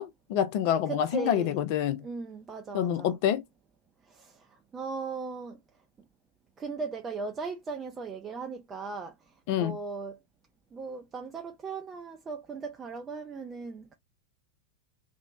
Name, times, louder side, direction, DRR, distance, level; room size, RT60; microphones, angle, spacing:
voice 1, 0.0-2.0 2.7-3.4 9.5-9.7, left 10 dB, 45° left, 0.4 m, -27 dB
voice 2, 0.9-1.6 2.0-3.1 4.1-4.5 4.7-5.6 6.6-9.2 9.5-10.2 10.7-13.9, right 4 dB, 20° right, 0.4 m, -37 dB
2.7 x 2.1 x 2.2 m
figure-of-eight pair, 90°, 0 cm